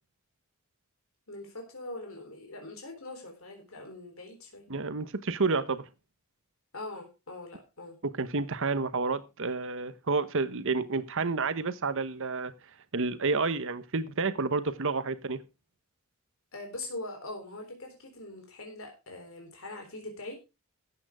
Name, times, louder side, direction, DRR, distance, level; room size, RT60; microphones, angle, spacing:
voice 1, 1.3-4.6 6.7-8.0 16.5-20.4, left 2 dB, 65° left, 3 dB, 3.8 m, -42 dB
voice 2, 4.7-5.9 8.0-12.5 12.9-15.4, right 4 dB, 65° right, 13 dB, 1.0 m, -30 dB
13.0 x 8.9 x 4.8 m, 0.28 s
head